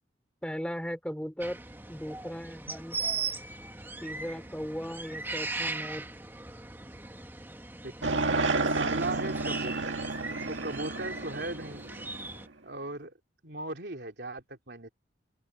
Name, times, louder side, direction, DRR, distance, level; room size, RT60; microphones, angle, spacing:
voice 1, 0.4-1.6 1.9-3.0 4.0-6.1, equal, 5° left, 3.9 m, -37 dB
sound 1, 1.4-12.5, right 4 dB, 10° right, 1.9 m, -39 dB
voice 2, 7.8-8.1 8.7-10.0 10.5-11.8 12.6-13.1 13.4-14.9, right 2 dB, 65° right, 3.3 m, -37 dB
sound 2, 8.0-12.4, right 3 dB, 85° right, 1.8 m, -31 dB
open air
head